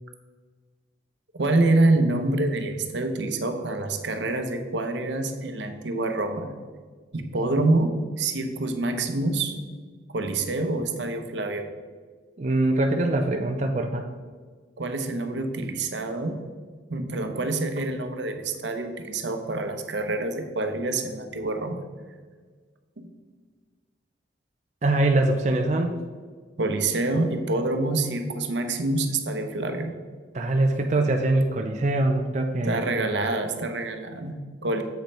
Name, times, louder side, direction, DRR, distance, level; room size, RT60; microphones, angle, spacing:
voice 1, 1.4-6.5 7.1-9.6 10.1-11.7 14.8-16.4 16.9-21.8 23.0-23.1 26.6-30.0 32.6-34.8, right 2 dB, 75° right, 6 dB, 0.8 m, -26 dB
voice 2, 12.4-14.1 24.8-26.0 30.3-32.8, right 2 dB, 40° right, 3 dB, 0.4 m, -23 dB
7.7 x 5.2 x 4.3 m, 1.5 s
head